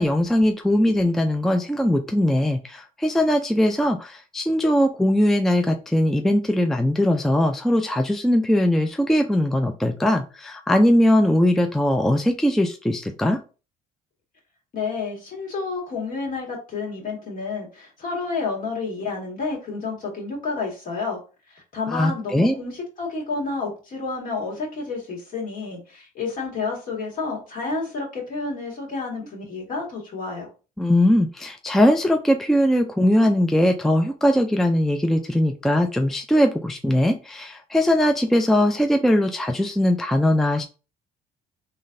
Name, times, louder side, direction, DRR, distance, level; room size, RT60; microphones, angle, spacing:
voice 1, 0.0-13.4 21.9-22.5 30.8-40.6, left 1 dB, ahead, 0.3 m, -20 dB
voice 2, 14.7-21.2 21.5-30.5, left 4 dB, 55° left, 2.0 m, -30 dB
3.9 x 3.2 x 2.6 m
cardioid pair, 110°, 17 cm